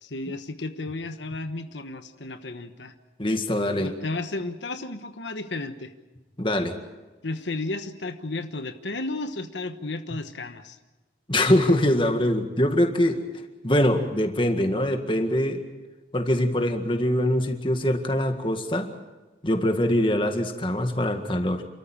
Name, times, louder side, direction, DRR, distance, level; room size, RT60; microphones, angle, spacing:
voice 1, 0.0-2.9 3.7-5.9 7.2-10.8, left 2 dB, 90° left, 8 dB, 1.2 m, -33 dB
voice 2, 3.2-3.9 6.4-6.7 11.3-13.2 13.6-15.6 16.1-18.9 19.4-21.6, left 1 dB, 30° left, 5 dB, 1.8 m, -23 dB
29.5 x 13.5 x 9.0 m, 1.2 s
head